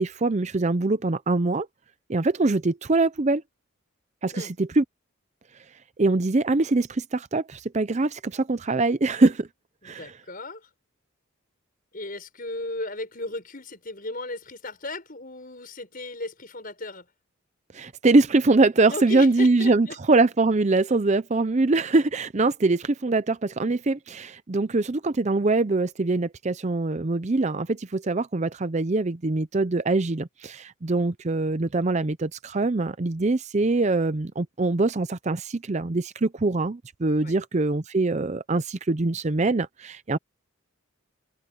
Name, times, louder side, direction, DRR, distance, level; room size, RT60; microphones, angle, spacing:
voice 1, 0.0-1.7 2.1-3.4 4.2-4.8 6.0-9.5 9.8-10.1 17.7-40.2, right 3 dB, 35° right, 0.5 m, -23 dB
voice 2, 9.8-10.7 11.9-17.1 18.9-20.0 37.2-37.4, left 2 dB, 40° left, 6.1 m, -36 dB
head